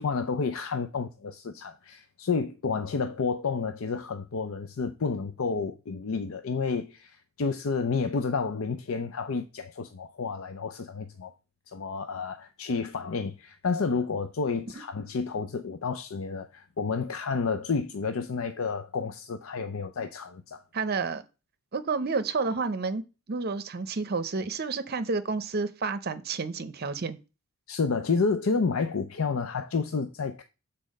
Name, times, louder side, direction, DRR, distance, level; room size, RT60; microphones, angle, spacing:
voice 1, 0.0-11.3 11.7-20.6 27.7-30.4, left 4 dB, 70° left, 0.5 m, -30 dB
voice 2, 20.7-21.2 21.7-23.0 23.3-27.2, right 4 dB, 50° right, 0.7 m, -30 dB
8.3 x 4.2 x 6.4 m
head